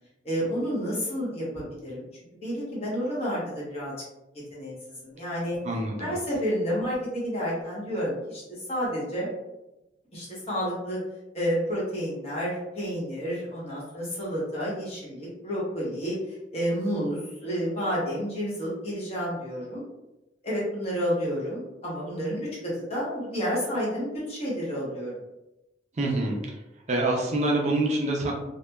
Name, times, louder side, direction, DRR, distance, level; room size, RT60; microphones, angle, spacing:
voice 1, 0.2-2.0 2.4-3.9 4.5-5.6 6.0-9.3 10.1-11.0 11.3-19.8 20.4-25.1, equal, 35° left, -6 dB, 0.9 m, -30 dB
voice 2, 5.6-6.2 26.0-26.4 26.9-28.3, right 2 dB, 40° right, -1 dB, 0.4 m, -26 dB
2.8 x 2.1 x 2.2 m, 0.97 s
head